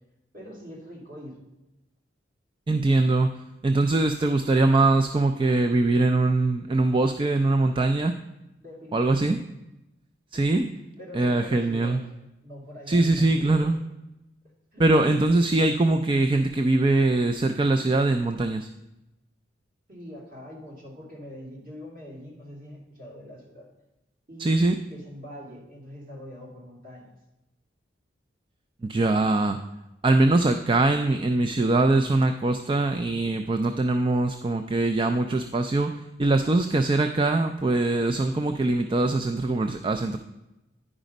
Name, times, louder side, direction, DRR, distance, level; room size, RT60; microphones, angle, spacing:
voice 1, 0.3-1.4 8.6-9.4 10.3-10.6 11.0-12.0 12.4-13.7 14.7-14.8 19.9-23.7 24.3-27.1, left 1 dB, 45° right, -2 dB, 2.5 m, -43 dB
voice 2, 2.7-3.3 3.6-8.1 8.9-9.4 10.3-10.7 11.1-12.0 12.9-13.8 14.8-18.7 24.4-24.8 28.8-29.6 30.0-35.9 36.2-40.2, right 2 dB, 25° right, 7 dB, 0.3 m, -22 dB
10.0 x 5.0 x 5.2 m, 0.94 s
head